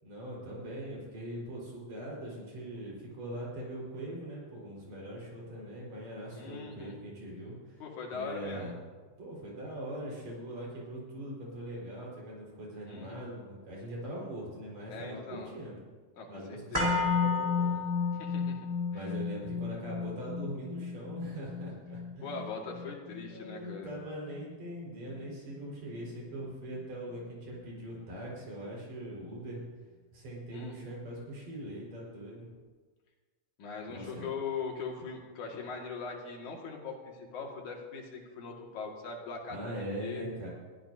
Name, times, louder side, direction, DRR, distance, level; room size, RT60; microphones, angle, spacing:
voice 1, 0.0-7.8 8.1-8.8 9.2-15.8 16.3-17.8 18.9-22.6 23.3-29.6 30.1-32.5 33.9-34.3 39.5-40.5, right 1 dB, 70° right, -4 dB, 6.2 m, -41 dB
voice 2, 6.3-7.0 7.8-8.7 12.9-13.2 14.9-15.5 16.2-16.9 18.1-18.6 18.9-19.1 22.2-23.9 30.5-30.9 33.6-39.8 40.0-40.2, left 5 dB, 85° left, 0 dB, 3.5 m, -41 dB
sound 1, 16.7-24.8 25.1-25.2, left 4 dB, 10° right, 3.3 m, -33 dB
21.5 x 14.5 x 2.8 m, 1.4 s
omnidirectional pair, 3.3 m